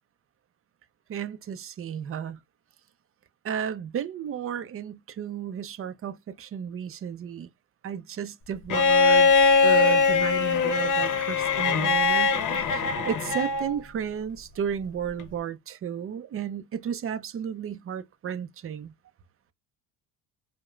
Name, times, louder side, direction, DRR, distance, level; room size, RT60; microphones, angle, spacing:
voice 1, 1.1-2.4 3.4-7.5 7.8-9.3 9.6-12.3 12.7-18.9, right 8 dB, 30° right, 0.5 m, -33 dB
Bowed string instrument, 8.7-13.7 15.2-15.3, left 4 dB, 40° left, 0.9 m, -21 dB
4.6 x 2.2 x 2.3 m
supercardioid pair, 90°, 46 cm